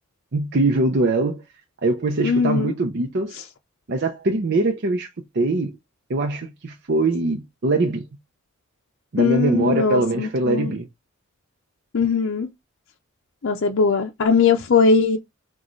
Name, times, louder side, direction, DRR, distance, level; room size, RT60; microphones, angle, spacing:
voice 1, 0.3-1.4 1.8-3.4 3.9-5.1 5.3-5.8 6.1-8.1 9.1-10.9, right 2 dB, 50° right, 0.6 m, -22 dB
voice 2, 2.2-2.7 3.3-3.4 9.2-10.7 11.9-12.5 13.4-15.2, left 5 dB, 60° left, 0.5 m, -20 dB
6.3 x 2.3 x 3.1 m
head